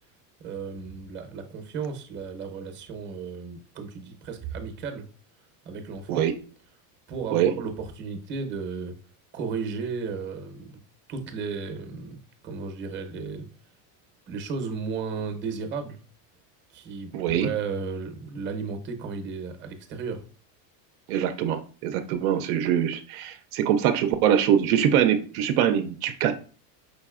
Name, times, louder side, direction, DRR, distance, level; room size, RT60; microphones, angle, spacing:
voice 1, 0.4-5.1 5.6-6.3 7.1-9.0 9.3-10.7 11.1-13.5 14.3-16.0 16.7-20.2, right 5 dB, 25° right, 0.7 m, -34 dB
voice 2, 17.1-17.5 21.1-26.4, right 9 dB, 65° right, 0.5 m, -23 dB
5.2 x 4.0 x 2.4 m
supercardioid pair, 145°, 48 cm